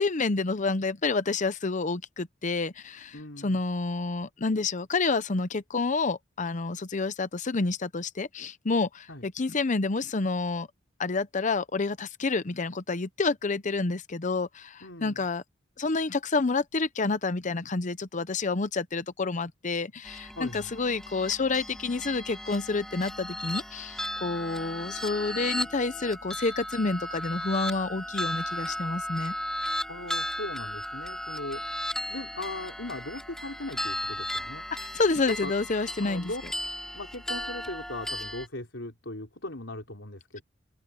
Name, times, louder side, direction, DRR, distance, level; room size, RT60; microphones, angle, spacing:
voice 1, 0.0-10.7 11.0-15.4 15.8-29.4 34.8-36.3, left 3 dB, 40° left, 0.7 m, -29 dB
voice 2, 3.1-3.6 9.1-9.3 14.8-15.3 20.4-20.7 29.9-31.7 32.1-34.7 35.3-35.5 36.0-36.4 36.9-40.4, left 2 dB, 70° left, 5.4 m, -38 dB
sound 1, 20.0-38.5, left 1 dB, 5° left, 4.4 m, -35 dB
open air
head